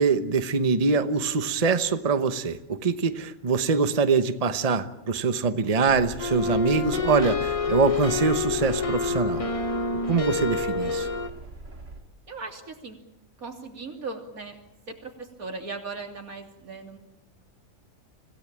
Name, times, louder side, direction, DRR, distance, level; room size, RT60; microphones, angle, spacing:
voice 1, 0.0-9.4 10.1-11.1, right 4 dB, 30° right, 10 dB, 1.0 m, -24 dB
sound 1, 5.9-12.0, right 2 dB, 60° right, 4.3 m, -42 dB
sound 2, 6.2-11.3, left 4 dB, 25° left, 1.2 m, -27 dB
voice 2, 12.3-13.0 13.4-14.6 14.9-17.0, right 3 dB, 80° right, 3 dB, 3.5 m, -38 dB
25.5 x 17.0 x 8.8 m, 0.91 s
omnidirectional pair, 1.5 m